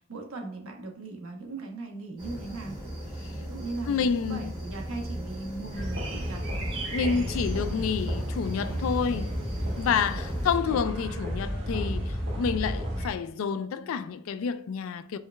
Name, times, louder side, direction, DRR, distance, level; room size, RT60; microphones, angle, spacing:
voice 1, 0.0-2.8 3.4-6.4 7.0-7.5 10.1-10.9, right 3 dB, 75° right, 0.9 m, -39 dB
sound 1, 2.2-10.6, right 1 dB, 20° right, 1.4 m, -38 dB
voice 2, 3.9-4.5 6.9-9.4 9.8-15.2, left 6 dB, 70° left, 0.3 m, -29 dB
sound 2, 5.7-13.1, equal, 55° right, 1.3 m, -32 dB
4.6 x 3.2 x 2.2 m
head